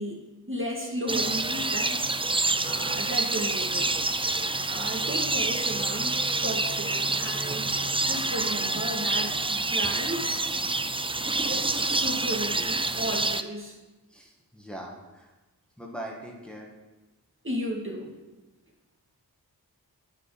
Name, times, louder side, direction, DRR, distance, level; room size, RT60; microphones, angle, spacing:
voice 1, 0.0-2.0 2.6-4.0 4.7-7.7 8.0-10.4 11.4-13.8 17.4-18.1, equal, 30° right, -1 dB, 2.0 m, -34 dB
sound 1, 1.1-13.4, right 2 dB, 15° right, 0.4 m, -27 dB
voice 2, 14.1-15.3 15.8-16.7, right 1 dB, 5° left, -2 dB, 1.8 m, -41 dB
9.8 x 5.4 x 7.9 m, 1.1 s
wide cardioid pair, 55°, 38 cm